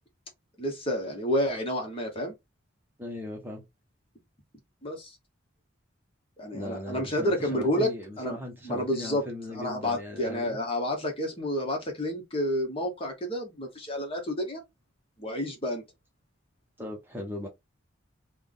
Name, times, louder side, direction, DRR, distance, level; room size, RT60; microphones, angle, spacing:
voice 1, 0.6-2.3 4.8-5.2 6.4-7.9 8.2-8.4 8.6-9.2 9.5-14.6 15.2-15.8, left 1 dB, 30° left, 1.0 m, -30 dB
voice 2, 3.0-3.6 6.5-10.6 16.8-17.5, left 1 dB, 10° right, 0.9 m, -38 dB
3.4 x 2.2 x 3.8 m
head